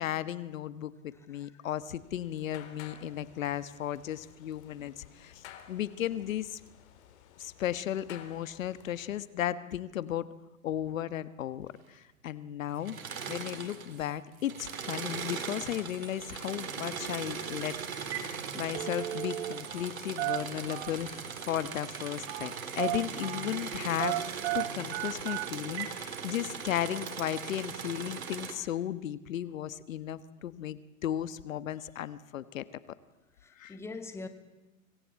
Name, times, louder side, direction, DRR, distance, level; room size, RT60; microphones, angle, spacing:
voice 1, 0.0-6.6 7.4-10.3 10.6-13.0 13.3-24.2 24.5-32.6 33.6-33.7, left 11 dB, 70° left, 1.4 m, -35 dB
voice 2, 1.1-1.5 33.4-34.3, left 3 dB, 5° left, 1.8 m, -43 dB
sound 1, 1.8-9.2, left 9 dB, 55° left, 4.0 m, -54 dB
Engine / Mechanisms, 12.8-14.1 14.4-28.5, right 6 dB, 80° right, 3.8 m, -39 dB
Telephone, 17.5-17.7 18.0-18.3 18.6-19.9 20.2-21.1 22.3-22.5 22.8-23.5 24.0-26.0 26.4-26.5 27.1-27.2, right 15 dB, 50° right, 1.8 m, -34 dB
25.5 x 19.0 x 8.6 m
hypercardioid pair, 135°, 41 cm